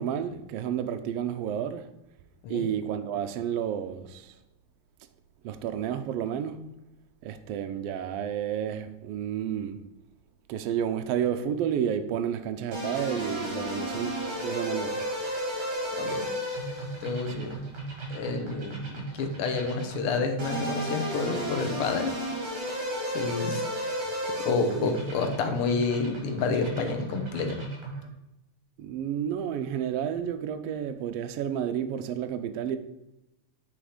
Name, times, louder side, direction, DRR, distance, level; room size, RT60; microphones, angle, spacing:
voice 1, 0.0-1.9 2.5-4.3 5.4-6.7 7.2-9.8 10.5-15.0 17.4-17.5 24.6-25.0 28.8-32.8, right 9 dB, 85° right, 1.3 m, -31 dB
sound 1, 12.7-28.1, right 1 dB, 60° right, 3.3 m, -34 dB
voice 2, 17.0-17.5 18.1-22.2 23.1-24.0 24.4-27.6, left 4 dB, 65° left, 1.4 m, -29 dB
8.8 x 4.4 x 4.9 m
omnidirectional pair, 3.4 m